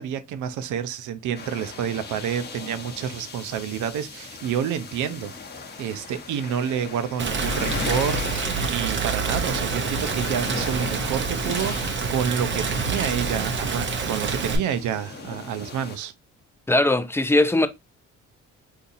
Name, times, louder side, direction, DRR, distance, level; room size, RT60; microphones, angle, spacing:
voice 1, 0.0-5.3 5.8-8.2 8.6-16.1, right 9 dB, 80° right, 0.6 m, -29 dB
sound 1, 1.3-16.0, left 4 dB, 35° left, 0.8 m, -38 dB
Rain, 7.2-14.6, right 4 dB, 40° right, 0.7 m, -27 dB
voice 2, 16.7-17.7, left 2 dB, 10° left, 0.4 m, -19 dB
3.9 x 2.7 x 2.6 m
cardioid pair, 90°, 30 cm